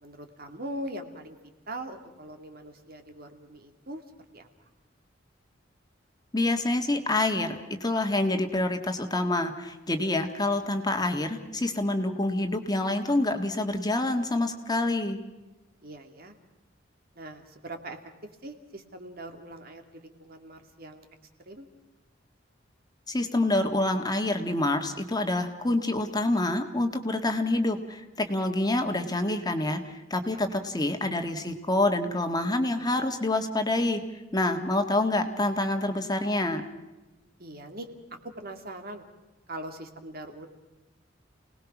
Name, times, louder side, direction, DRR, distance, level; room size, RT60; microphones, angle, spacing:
voice 1, 0.0-1.4 1.7-4.0 4.3-4.5 15.8-16.3 17.2-18.0 18.4-21.1 21.5-21.7 30.3-30.4 37.4-39.0 39.5-40.5, right 1 dB, 50° right, 6 dB, 2.5 m, -41 dB
voice 2, 6.3-15.2 23.1-34.0 34.3-36.6, left 2 dB, 20° left, 5 dB, 1.8 m, -27 dB
29.5 x 19.5 x 6.1 m, 1.1 s
head